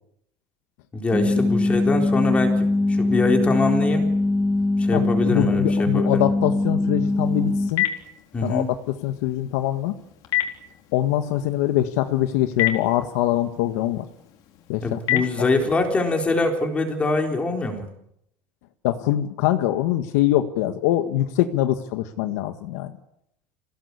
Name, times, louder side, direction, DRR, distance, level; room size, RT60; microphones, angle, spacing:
voice 1, 0.9-4.1 4.8-6.2 8.3-8.7 14.8-17.9, left 3 dB, 15° left, 3 dB, 4.0 m, -24 dB
sound 1, 1.1-7.7, left 2 dB, ahead, 2.0 m, -22 dB
voice 2, 4.9-7.8 8.4-8.8 9.0-9.9 10.9-14.0 14.7-15.5 18.8-22.9, left 13 dB, 80° left, 7 dB, 1.7 m, -23 dB
Telephone, 7.1-15.9, left 13 dB, 50° left, 3.9 m, -32 dB
27.5 x 17.5 x 8.5 m, 0.77 s
cardioid pair, 170°, 9 cm